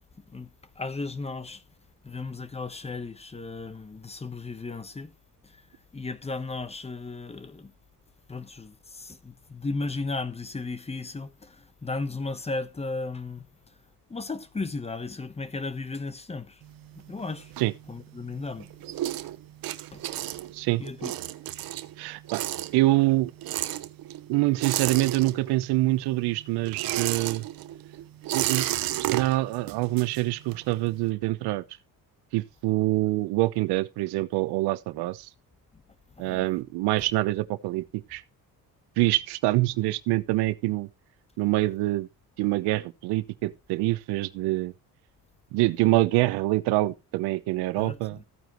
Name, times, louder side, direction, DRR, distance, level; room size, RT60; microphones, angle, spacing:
voice 1, 0.7-1.6 2.0-5.1 5.4-7.7 8.3-13.7 14.1-16.6 16.9-17.5 17.9-18.8 19.9-20.0 20.8-21.1 35.7-35.8 36.2-36.5 47.8-48.2, left 3 dB, 15° left, 1.0 m, -35 dB
sound 1, 16.6-18.2 18.6-25.8 26.0-30.7, right 14 dB, 65° right, 1.0 m, -32 dB
voice 2, 22.0-22.4 22.7-23.3 24.3-27.5 28.3-28.8 29.1-31.6 32.3-35.3 36.2-38.2 39.0-40.9 41.4-42.1 42.4-44.7 45.5-48.2, right 19 dB, 85° right, 0.9 m, -25 dB
14.5 x 9.3 x 3.1 m
cardioid pair, 105°, 38 cm